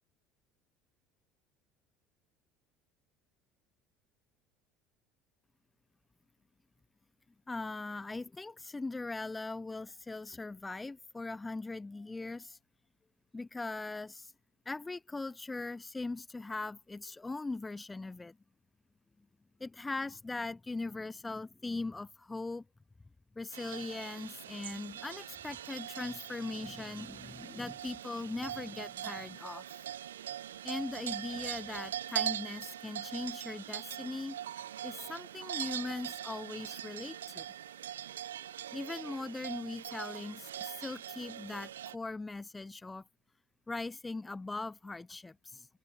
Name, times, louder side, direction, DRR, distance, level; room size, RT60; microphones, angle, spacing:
voice 1, 7.5-12.6 13.3-14.3 14.6-18.4 19.6-22.6 23.3-29.6 30.6-34.4 34.8-37.5 38.7-43.0 43.7-45.7, left 3 dB, 15° left, 6.3 m, -40 dB
sound 1, 23.5-42.0, right 11 dB, 80° right, 4.1 m, -42 dB
figure-of-eight pair, 65°, 0 cm